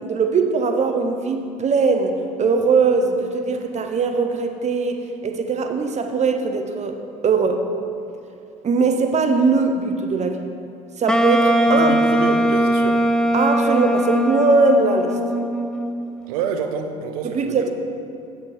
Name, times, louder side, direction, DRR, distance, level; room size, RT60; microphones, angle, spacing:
voice 1, 0.0-7.6 8.6-10.4 11.0-12.0 13.3-15.2 17.2-17.7, right 4 dB, 40° right, 5 dB, 0.9 m, -20 dB
Wind instrument woodwind instrument, 11.1-16.1, equal, 5° left, 0.5 m, -20 dB
voice 2, 11.7-13.0 16.3-17.7, right 5 dB, 80° right, 6 dB, 0.7 m, -27 dB
7.2 x 7.2 x 4.3 m, 2.7 s
hypercardioid pair, 65°, 18 cm